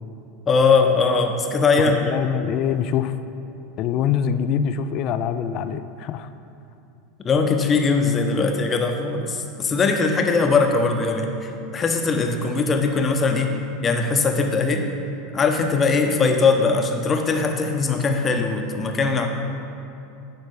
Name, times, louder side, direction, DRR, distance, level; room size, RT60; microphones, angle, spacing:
voice 1, 0.5-2.1 7.2-13.6 13.8-14.8 15.3-19.3, left 4 dB, 30° left, 4 dB, 0.8 m, -20 dB
voice 2, 1.8-3.1 3.8-6.3, left 8 dB, 50° left, 11 dB, 0.3 m, -24 dB
10.5 x 4.5 x 4.1 m, 2.7 s
hypercardioid pair, 85°, 0 cm